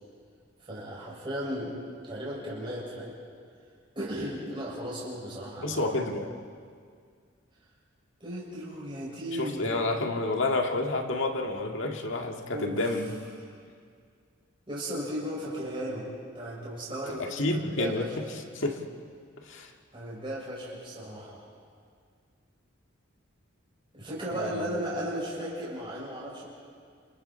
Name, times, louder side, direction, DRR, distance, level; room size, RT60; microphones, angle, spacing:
voice 1, 0.6-1.7 2.1-3.1 3.9-5.9 8.2-9.7 12.5-13.0 14.7-18.2 19.9-21.4 23.9-26.5, equal, 25° right, -7 dB, 6.3 m, -35 dB
voice 2, 5.6-6.4 9.4-13.1 17.3-18.1 18.5-18.8 19.5-19.7 24.3-24.7, left 2 dB, 65° left, 3 dB, 2.0 m, -29 dB
29.5 x 28.5 x 4.5 m, 2.1 s
head